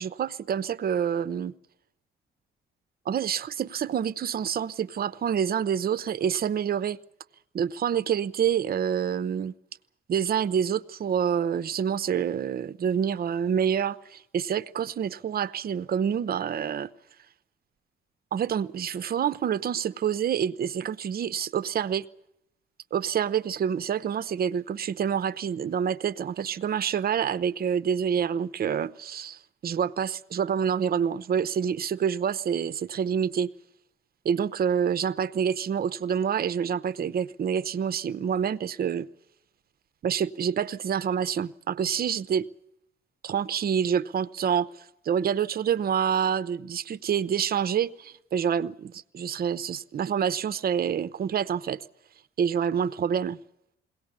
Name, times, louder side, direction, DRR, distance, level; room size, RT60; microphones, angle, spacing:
voice 1, 0.0-1.5 3.1-7.0 7.5-9.5 10.1-16.9 18.3-22.1 22.9-33.5 34.2-39.1 40.0-42.5 43.2-44.7 45.0-51.8 52.4-53.4, right 8 dB, 50° right, 0.7 m, -27 dB
22.0 x 18.0 x 8.6 m
cardioid pair, 90°, 20 cm